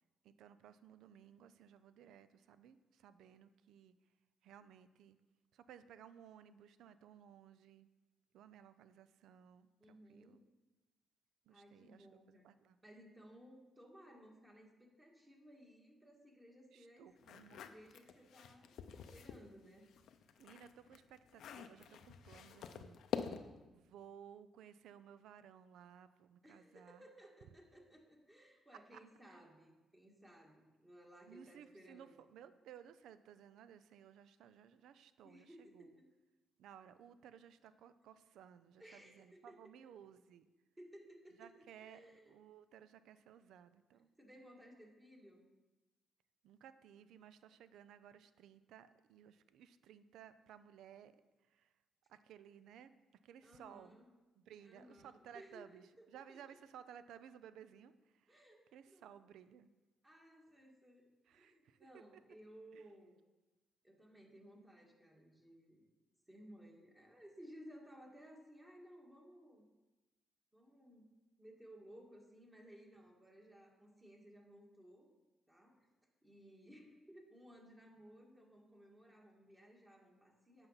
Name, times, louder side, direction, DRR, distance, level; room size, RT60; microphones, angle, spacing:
voice 1, 0.2-3.9 4.4-5.2 5.5-7.9 8.3-10.4 11.5-12.8 16.7-17.6 20.4-23.0 23.7-27.0 28.9-29.0 29.3-29.5 31.3-35.9 36.6-40.5 41.4-44.1 46.4-51.7 52.1-54.0 54.4-58.4 58.7-59.7 61.3-62.2 62.7-62.9, right 9 dB, 80° right, 13 dB, 0.4 m, -58 dB
voice 2, 9.8-10.4 11.5-12.4 12.8-17.1 17.7-19.9 26.4-32.1 35.2-36.0 38.8-40.0 40.8-42.3 44.2-45.5 53.4-54.1 54.6-55.6 56.0-56.4 58.3-59.2 60.0-63.2 63.8-65.8 66.3-69.6 70.5-71.1 71.4-75.1 75.5-75.9 76.2-80.7, equal, 15° right, 0 dB, 1.8 m, -59 dB
sound 1, 17.2-19.4 19.9-23.7, left 7 dB, 70° left, 0.5 m, -47 dB
8.1 x 5.4 x 5.6 m, 1.1 s
cardioid pair, 90°, 0 cm